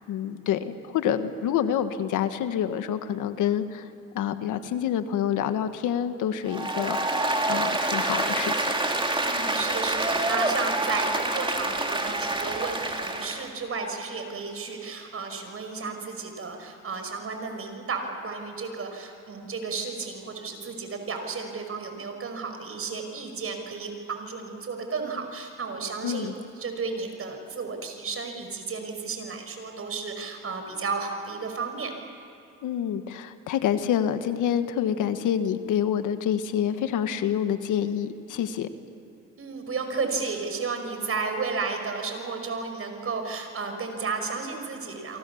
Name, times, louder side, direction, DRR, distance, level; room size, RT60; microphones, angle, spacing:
voice 1, 0.0-3.9 4.1-8.7 26.0-26.3 32.6-38.7, left 9 dB, 85° left, 9 dB, 1.5 m, -27 dB
Applause, 6.5-13.5, right 2 dB, 15° right, 3.1 m, -27 dB
voice 2, 9.2-31.9 39.4-45.2, right 4 dB, 50° right, 5 dB, 5.5 m, -33 dB
29.5 x 24.5 x 7.2 m, 2.7 s
cardioid pair, 90°, 30 cm